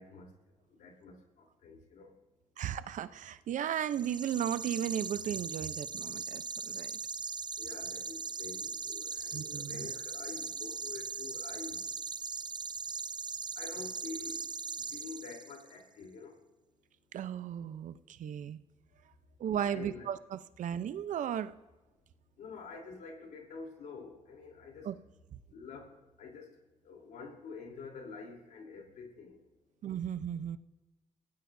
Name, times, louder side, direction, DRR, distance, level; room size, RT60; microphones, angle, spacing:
voice 1, 0.0-2.3 6.4-6.5 7.5-11.9 12.3-12.5 13.5-16.5 18.5-18.6 18.9-20.1 22.1-24.9 25.5-29.6, left 4 dB, 85° left, 2 dB, 3.6 m, -48 dB
voice 2, 2.6-7.0 9.3-9.9 17.1-18.6 19.4-21.5 24.8-25.0 29.8-30.6, right 9 dB, 75° right, 13 dB, 0.7 m, -35 dB
sound 1, 3.9-15.7, right 5 dB, 35° right, 0.6 m, -40 dB
29.5 x 16.5 x 2.7 m, 1.1 s
cardioid pair, 70°, 13 cm